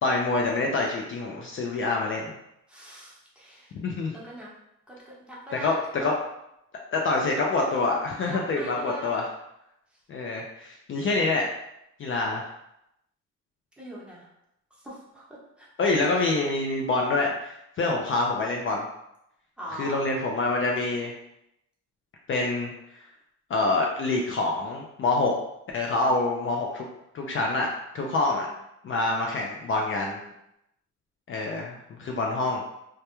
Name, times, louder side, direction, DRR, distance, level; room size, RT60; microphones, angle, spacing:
voice 1, 0.0-2.3 3.8-4.1 5.6-6.1 6.9-9.3 10.1-11.4 12.0-12.5 15.8-18.8 19.8-21.1 22.3-22.7 23.5-25.3 25.7-26.8 27.1-27.7 27.9-28.5 28.8-30.2 31.3-32.6, left 3 dB, 45° left, 0 dB, 0.4 m, -26 dB
voice 2, 2.7-3.8 4.1-4.5 4.9-6.2 8.2-9.2 9.9-10.0 13.8-14.3 14.7-16.2 19.6-20.0 28.3-28.5 30.0-30.3, equal, 5° right, -6 dB, 0.8 m, -42 dB
2.2 x 2.2 x 2.9 m, 0.81 s
cardioid pair, 90°, 30 cm